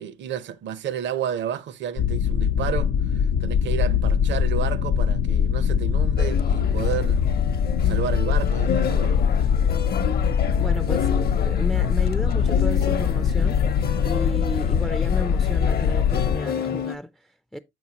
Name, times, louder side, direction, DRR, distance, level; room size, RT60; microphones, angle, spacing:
voice 1, 0.0-7.2 7.8-9.2, right 9 dB, 65° right, 0.7 m, -31 dB
sound 1, 2.0-16.4, left 7 dB, 85° left, 0.6 m, -22 dB
sound 2, 6.2-16.9, left 7 dB, 50° left, 0.7 m, -31 dB
Bowed string instrument, 10.4-14.6, right 8 dB, 85° right, 1.6 m, -44 dB
voice 2, 10.6-17.6, left 1 dB, ahead, 0.3 m, -33 dB
6.9 x 6.1 x 2.8 m
cardioid pair, 90°, 20 cm